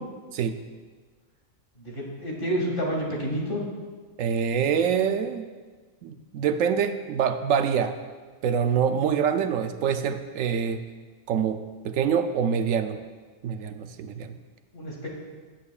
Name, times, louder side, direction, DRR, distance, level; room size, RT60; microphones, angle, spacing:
voice 1, 1.8-3.6 14.7-15.1, equal, 40° left, -2 dB, 2.2 m, -29 dB
voice 2, 4.2-5.5 6.0-7.9 8.4-10.8 11.3-13.0 13.4-14.3, right 7 dB, 80° right, 9 dB, 1.0 m, -25 dB
15.5 x 8.9 x 2.4 m, 1.4 s
omnidirectional pair, 1.4 m